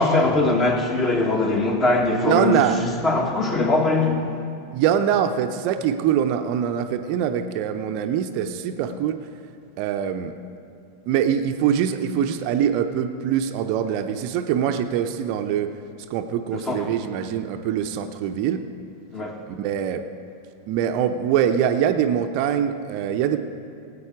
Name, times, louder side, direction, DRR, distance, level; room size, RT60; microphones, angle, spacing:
voice 1, 0.0-4.2 16.5-16.9 19.1-19.4, left 2 dB, 25° left, 4 dB, 1.5 m, -21 dB
voice 2, 2.2-2.8 4.7-9.2 9.8-10.3 11.1-15.7 16.1-18.6 19.5-20.0 20.7-23.4, right 9 dB, 45° right, 7 dB, 0.6 m, -23 dB
18.5 x 8.4 x 4.8 m, 2.4 s
figure-of-eight pair, 90°, 0 cm